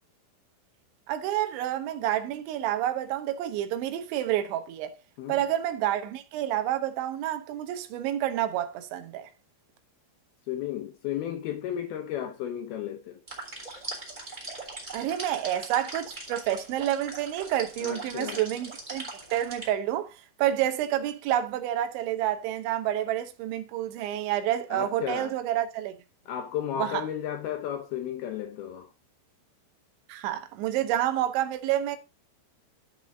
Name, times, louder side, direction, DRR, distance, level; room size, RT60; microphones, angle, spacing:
voice 1, 1.1-4.9 5.3-9.3 14.9-20.1 20.4-26.0 26.8-27.0 30.1-32.0, right 12 dB, 85° right, 3.3 m, -29 dB
voice 2, 10.5-13.2 17.8-18.5 24.7-25.3 26.3-28.9, left 10 dB, 75° left, 2.4 m, -34 dB
sound 1, 13.3-19.7, right 2 dB, 15° right, 1.6 m, -40 dB
12.0 x 5.0 x 3.8 m
omnidirectional pair, 5.3 m